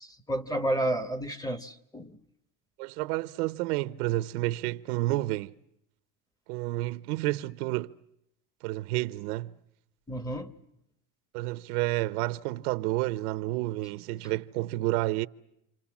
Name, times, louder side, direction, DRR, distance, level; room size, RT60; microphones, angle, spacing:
voice 1, 0.0-2.2 10.1-10.5, right 1 dB, 10° left, 1.1 m, -31 dB
voice 2, 2.8-5.5 6.5-8.0 8.6-9.6 11.3-15.3, right 18 dB, 85° right, 1.0 m, -30 dB
29.5 x 26.0 x 7.3 m
cardioid pair, 140°, 44 cm